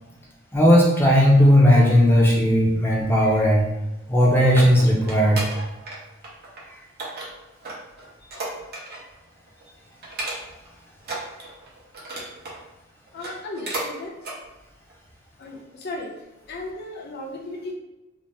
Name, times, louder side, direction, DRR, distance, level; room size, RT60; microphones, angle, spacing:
voice 1, 0.5-3.7 4.1-5.4, equal, 10° left, -3 dB, 0.5 m, -16 dB
sound 1, 4.0-6.0 6.2-6.6 7.0-9.1 9.5-9.6 10.0-10.7 11.0-12.6 13.1-13.9 14.2-14.4 14.9-15.0, right 2 dB, 50° right, 0.7 m, -34 dB
voice 2, 13.1-14.1 15.4-16.1 16.5-17.7, left 2 dB, 55° left, -1 dB, 0.6 m, -35 dB
2.7 x 2.0 x 3.3 m, 1.0 s
head